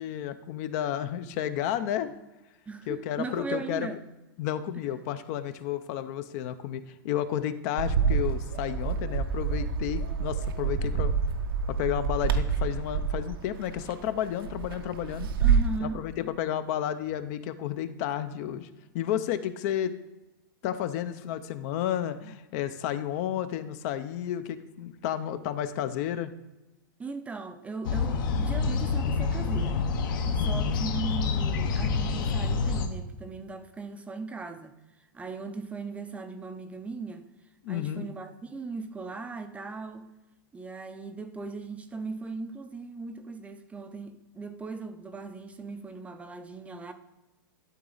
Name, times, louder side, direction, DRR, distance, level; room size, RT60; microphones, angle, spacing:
voice 1, 0.0-2.1 2.9-4.0 4.4-11.1 11.7-15.3 15.8-18.7 18.9-19.9 20.6-26.3 30.4-30.8 37.6-38.1, left 11 dB, 45° left, 0.5 m, -32 dB
voice 2, 2.7-4.0 15.4-16.0 27.0-29.8 30.3-34.7 35.1-37.2 37.7-40.1 40.5-46.9, right 4 dB, 10° right, 0.5 m, -38 dB
Bird, 7.8-15.8, right 6 dB, 80° right, 0.8 m, -28 dB
sound 1, 27.8-32.9, left 4 dB, 65° left, 1.0 m, -27 dB
12.0 x 4.0 x 3.9 m
hypercardioid pair, 135°, 12 cm